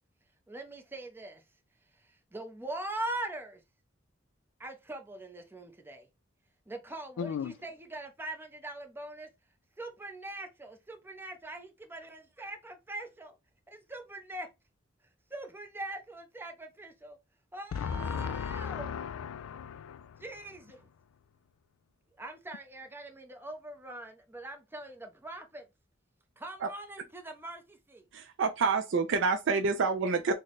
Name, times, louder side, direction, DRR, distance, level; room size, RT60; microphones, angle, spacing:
voice 1, 0.5-1.4 2.0-3.6 4.6-6.1 6.7-9.3 9.8-13.4 13.7-14.5 15.3-17.2 17.5-18.9 20.2-20.9 22.2-25.7 26.4-28.0, right 2 dB, 10° right, 0.5 m, -42 dB
voice 2, 7.2-7.5 17.7-20.2, left 7 dB, 90° left, 0.3 m, -36 dB
voice 3, 28.1-30.3, right 4 dB, 65° right, 0.4 m, -28 dB
3.2 x 2.1 x 3.9 m
head